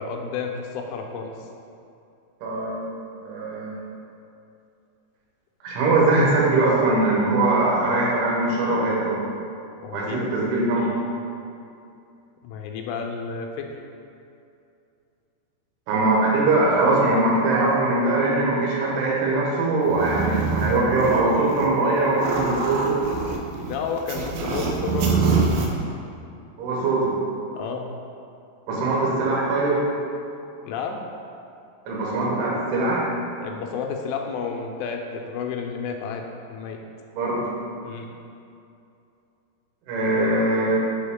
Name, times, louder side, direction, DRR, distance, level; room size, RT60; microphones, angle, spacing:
voice 1, 0.0-1.5 9.7-10.4 12.4-13.7 23.7-25.5 27.5-27.9 30.6-31.0 33.4-36.8 37.8-38.1, left 5 dB, 80° left, 2 dB, 2.6 m, -31 dB
voice 2, 2.4-2.9 3.2-3.8 5.6-9.2 9.9-11.0 15.9-23.0 26.6-27.2 28.7-29.8 31.9-33.1 37.2-37.4 39.9-40.8, right 2 dB, 75° right, -5 dB, 2.9 m, -21 dB
sound 1, 19.8-21.7 22.0-25.7, right 4 dB, 90° right, 2.1 m, -25 dB
6.2 x 4.6 x 3.6 m, 2.6 s
omnidirectional pair, 5.1 m